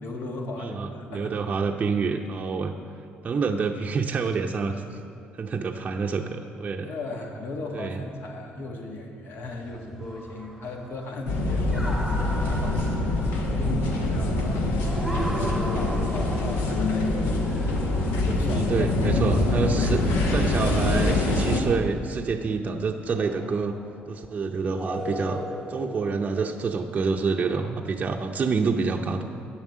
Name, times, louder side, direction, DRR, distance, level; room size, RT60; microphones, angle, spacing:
voice 1, 0.0-1.4 6.8-15.0 15.3-17.1 18.3-20.6, left 2 dB, 60° left, 1 dB, 1.7 m, -36 dB
voice 2, 0.6-2.7 3.2-4.8 5.4-6.9 7.7-8.0 18.4-20.0 20.3-23.8 24.1-25.4 25.7-29.3, right 4 dB, 35° right, 2 dB, 0.6 m, -27 dB
sound 1, 9.4-19.2 19.6-21.6 23.0-23.8 24.8-26.6, equal, ahead, 1.4 m, -38 dB
sound 2, 11.3-21.6, left 2 dB, 80° left, 1.4 m, -24 dB
9.5 x 7.3 x 7.3 m, 2.5 s
cardioid pair, 90°, 4 cm